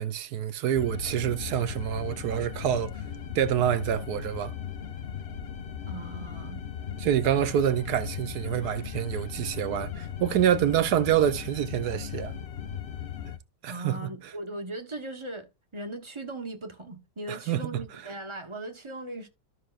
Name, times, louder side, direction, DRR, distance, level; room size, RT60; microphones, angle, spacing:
voice 1, 0.0-2.9 3.3-4.5 7.0-12.3 13.6-14.1 17.3-17.8, right 10 dB, 70° right, 1.1 m, -27 dB
sound 1, 0.7-13.4, left 8 dB, 50° left, 0.8 m, -37 dB
voice 2, 5.9-6.6 7.4-7.5 13.7-19.3, right 2 dB, 20° right, 1.0 m, -39 dB
13.0 x 5.9 x 2.5 m
omnidirectional pair, 1.9 m